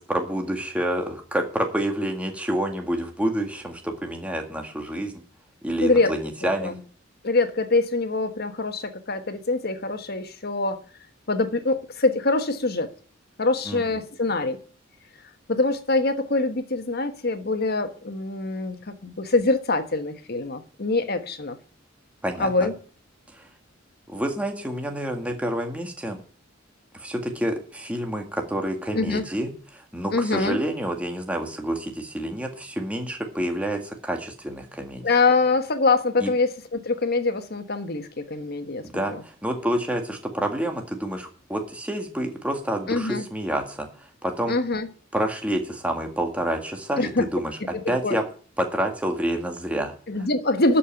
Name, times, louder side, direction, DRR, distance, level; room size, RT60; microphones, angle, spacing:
voice 1, 0.0-5.2 5.6-6.7 13.7-13.8 22.2-22.7 23.3-23.5 24.1-26.2 26.9-35.0 36.2-36.3 38.8-44.5 45.1-47.6 47.9-48.2 48.6-49.9, right 1 dB, 5° right, 1.9 m, -28 dB
voice 2, 5.8-6.1 6.4-6.8 7.2-10.8 11.3-12.9 13.4-14.6 15.5-21.6 22.4-22.7 28.9-29.2 30.1-30.6 35.0-39.2 42.9-43.2 44.5-44.9 47.0-47.3 47.7-48.2 50.1-50.8, left 3 dB, 50° left, 1.3 m, -24 dB
12.5 x 5.7 x 8.9 m
head